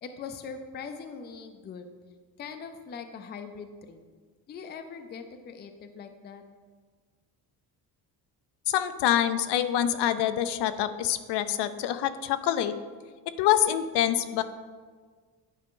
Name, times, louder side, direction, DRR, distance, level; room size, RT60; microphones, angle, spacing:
voice 1, 0.0-1.9 2.4-4.0 4.5-6.4, left 5 dB, 25° left, 8 dB, 0.4 m, -41 dB
voice 2, 8.7-12.7 13.4-14.4, left 11 dB, 80° left, 11 dB, 0.6 m, -26 dB
10.0 x 5.0 x 3.7 m, 1.6 s
cardioid pair, 165°, 40 cm